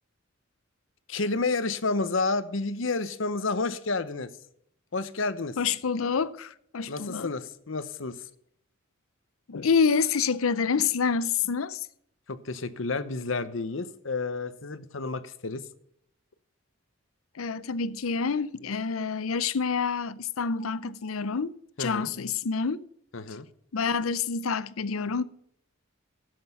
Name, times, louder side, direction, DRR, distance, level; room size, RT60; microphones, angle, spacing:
voice 1, 1.1-4.3 4.9-5.6 6.9-8.2 12.3-15.7 21.8-22.1 23.1-23.5, left 3 dB, 65° left, 0.9 m, -30 dB
voice 2, 5.6-7.3 9.5-11.8 17.4-22.8 23.7-25.2, left 5 dB, 90° left, 0.6 m, -27 dB
12.5 x 7.8 x 5.4 m
head